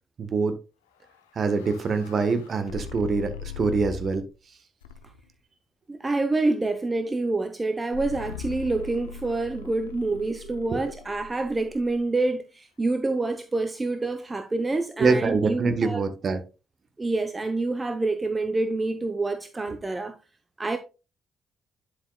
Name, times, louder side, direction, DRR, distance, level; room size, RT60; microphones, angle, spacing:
voice 1, 0.2-0.5 1.4-4.2 10.7-10.8 15.0-16.4, right 4 dB, 50° right, 1.2 m, -24 dB
sound 1, 1.0-4.3 4.8-5.3 7.9-12.0, left 6 dB, 85° left, 0.7 m, -40 dB
voice 2, 5.9-16.0 17.0-20.1 20.6-20.8, right 2 dB, 25° right, 0.7 m, -27 dB
11.0 x 5.0 x 2.3 m
hypercardioid pair, 45°, 0 cm